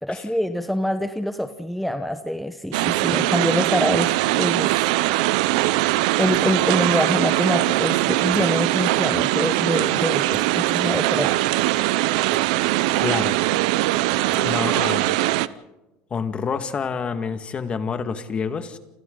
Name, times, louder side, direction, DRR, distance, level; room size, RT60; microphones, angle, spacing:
voice 1, 0.0-4.9 6.2-11.3, equal, ahead, 8 dB, 1.0 m, -25 dB
sound 1, 2.7-15.5, right 17 dB, 80° right, 0.7 m, -21 dB
sound 2, 6.3-6.8 8.3-8.7 10.3-10.6 12.3-12.6 14.3-14.5, right 6 dB, 35° right, 2.5 m, -41 dB
voice 2, 13.0-13.4 14.3-15.1 16.1-18.8, left 5 dB, 30° left, 8 dB, 1.9 m, -27 dB
28.5 x 28.0 x 4.0 m, 1.0 s
supercardioid pair, 120°, 4 cm